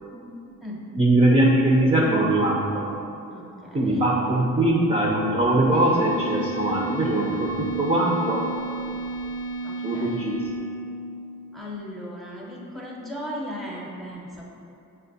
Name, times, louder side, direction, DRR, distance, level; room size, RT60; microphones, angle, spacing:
voice 1, 1.0-2.9 3.7-8.4 9.8-10.3, right 1 dB, 15° right, -3 dB, 0.4 m, -21 dB
voice 2, 3.3-4.1 9.6-10.2 11.5-14.4, equal, ahead, -3 dB, 0.8 m, -37 dB
sound 1, 5.7-11.3, right 3 dB, 80° left, 0.7 m, -33 dB
6.3 x 2.1 x 2.6 m, 2.6 s
cardioid pair, 75°, 34 cm